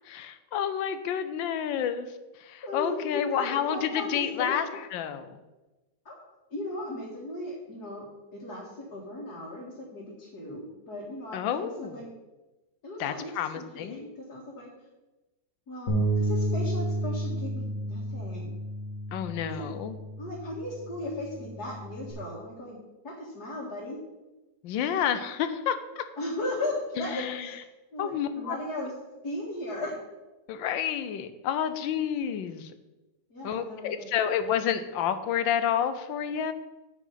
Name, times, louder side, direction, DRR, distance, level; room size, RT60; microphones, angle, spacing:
voice 1, 0.1-2.1 2.4-5.4 11.3-12.0 13.0-14.0 19.1-20.0 24.6-26.0 27.0-27.5 28.0-28.6 30.5-32.7 33.4-36.5, left 9 dB, 85° left, 10 dB, 1.4 m, -30 dB
voice 2, 2.6-4.5 6.1-6.2 6.5-8.0 8.3-12.1 12.8-14.7 15.7-18.6 19.4-19.7 20.2-22.8 23.0-24.0 26.2-27.5 27.9-28.9 29.2-30.0 33.3-34.1, left 1 dB, 55° left, -7 dB, 2.5 m, -37 dB
Bass guitar, 15.9-22.1, right 1 dB, 40° left, 2.0 m, -31 dB
8.9 x 8.2 x 4.0 m, 1.1 s
omnidirectional pair, 2.0 m